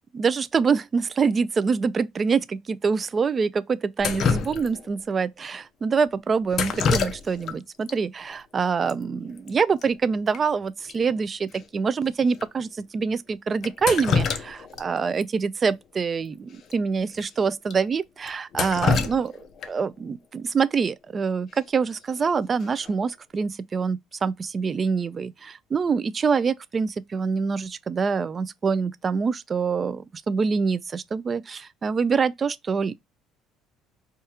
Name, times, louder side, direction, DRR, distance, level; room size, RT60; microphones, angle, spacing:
voice 1, 0.1-19.3 19.7-32.9, right 5 dB, 25° right, 0.3 m, -25 dB
Drip, 4.0-5.0 6.5-7.6 7.9-8.0 8.9-9.0 9.2-9.5 9.8-9.9 10.3-10.4 10.9-11.0 11.5-11.6 12.3-12.5 13.6-14.8 15.2-15.3 16.6-16.7 17.1-17.2 17.7-17.8 18.3-19.9 21.9-22.2 22.6-23.0, left 5 dB, 40° left, 0.6 m, -26 dB
4.7 x 2.3 x 2.7 m
cardioid pair, 145°, 0 cm